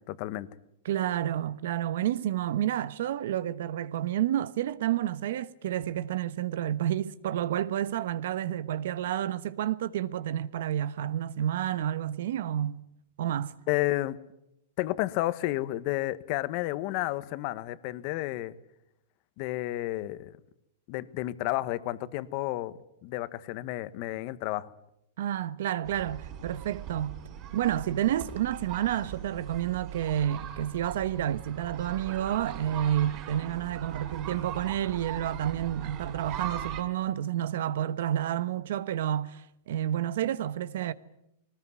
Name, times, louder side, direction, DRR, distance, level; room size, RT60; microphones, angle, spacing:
voice 1, 0.1-0.5 13.7-14.2 14.8-18.5 19.4-20.4 20.9-24.7, left 17 dB, 45° left, 1.3 m, -31 dB
voice 2, 0.8-12.8 13.2-13.6 25.2-27.2 27.5-40.9, right 11 dB, 70° right, 1.1 m, -30 dB
sound 1, 25.8-36.8, right 9 dB, 40° right, 5.5 m, -40 dB
21.5 x 19.5 x 9.7 m
supercardioid pair, 145°, 0 cm